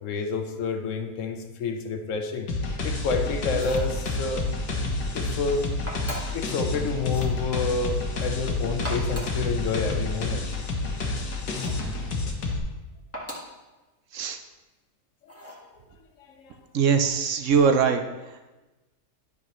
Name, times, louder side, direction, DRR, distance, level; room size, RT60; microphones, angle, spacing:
voice 1, 0.0-2.5 2.8-4.4 5.1-5.7 6.3-10.5 15.3-15.5 16.2-16.6, left 4 dB, 60° left, 6 dB, 1.1 m, -29 dB
sound 1, 2.5-12.6, left 2 dB, 80° left, 1.6 m, -29 dB
sound 2, 3.5-3.9 5.9-6.4 7.0-7.4 8.7-9.4 11.5-11.9 13.1-13.6 15.3-15.7, equal, 10° left, 1.4 m, -38 dB
voice 2, 16.7-18.0, right 6 dB, 65° right, 7 dB, 0.8 m, -21 dB
10.5 x 6.1 x 3.0 m, 1.1 s
omnidirectional pair, 1.6 m